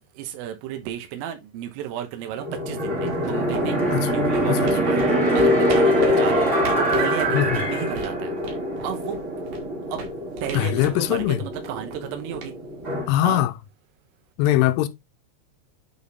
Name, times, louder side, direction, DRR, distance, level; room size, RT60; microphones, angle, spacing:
voice 1, 0.2-3.8 4.1-8.3 8.8-9.2 9.9-10.0 10.4-12.5 13.2-13.5, right 10 dB, 85° right, 3.8 m, -33 dB
sound 1, 2.4-13.1, equal, 30° right, 1.3 m, -23 dB
sound 2, 3.0-13.5, right 5 dB, 55° right, 2.8 m, -41 dB
voice 2, 10.5-11.4 13.1-13.5 14.4-14.9, left 13 dB, 90° left, 3.3 m, -21 dB
9.2 x 4.2 x 3.6 m
omnidirectional pair, 5.7 m